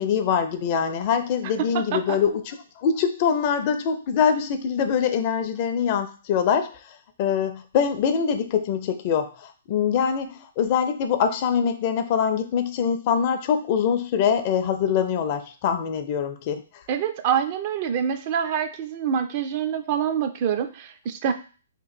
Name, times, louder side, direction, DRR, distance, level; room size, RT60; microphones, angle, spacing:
voice 1, 0.0-6.7 7.2-16.6, left 7 dB, 40° left, 8 dB, 0.4 m, -24 dB
voice 2, 1.6-2.2 16.9-21.3, right 8 dB, 40° right, 8 dB, 0.4 m, -26 dB
2.9 x 2.3 x 4.2 m, 0.37 s
figure-of-eight pair, 125°, 0 cm